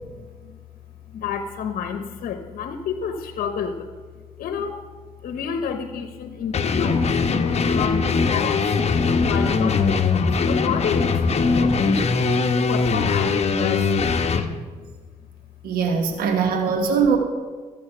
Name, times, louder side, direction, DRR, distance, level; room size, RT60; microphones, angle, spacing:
voice 1, 1.1-3.9 4.4-4.8 5.2-9.0 9.3-12.1 12.6-13.9 14.8-14.9, left 7 dB, 75° left, 8 dB, 0.8 m, -30 dB
sound 1, 6.5-14.5, left 4 dB, 45° left, 0.9 m, -21 dB
voice 2, 15.6-17.2, right 6 dB, 90° right, 5 dB, 1.3 m, -21 dB
13.5 x 7.4 x 5.8 m, 1.5 s
cardioid pair, 70°, 15 cm